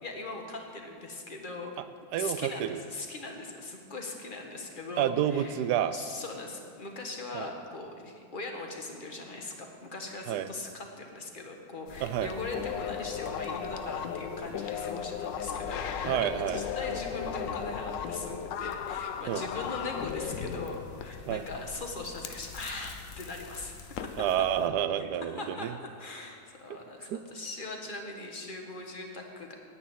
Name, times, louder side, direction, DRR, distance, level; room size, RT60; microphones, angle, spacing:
voice 1, 0.0-1.7 2.2-5.6 5.9-24.1 25.0-25.1 25.4-25.7 26.0-29.6, left 2 dB, 30° left, 2 dB, 1.5 m, -40 dB
voice 2, 2.1-2.8 5.0-5.9 7.3-7.5 10.3-10.5 12.0-12.3 16.0-16.6 19.3-19.4 21.3-21.4 24.2-25.7 27.0-27.2, right 10 dB, 70° right, 12 dB, 1.1 m, -29 dB
sound 1, 11.9-24.7, left 6 dB, 60° left, 0.9 m, -43 dB
sound 2, 12.5-21.7, left 8 dB, 75° left, 1.4 m, -36 dB
10.0 x 9.5 x 9.0 m, 2.2 s
omnidirectional pair, 2.0 m